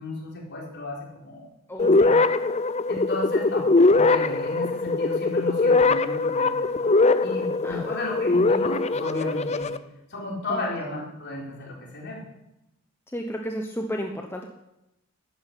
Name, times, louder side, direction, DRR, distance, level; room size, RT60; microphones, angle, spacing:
voice 1, 0.0-1.5 1.8-2.2 2.9-6.9 7.2-9.7 10.1-12.2, left 2 dB, 50° left, -2 dB, 4.6 m, -34 dB
voice 2, 1.7-2.0 7.6-7.9 10.5-10.7 13.1-14.4, equal, 10° left, 2 dB, 1.0 m, -32 dB
sound 1, 1.8-9.8, left 3 dB, 30° left, 0.6 m, -21 dB
12.0 x 10.5 x 9.8 m, 0.91 s
head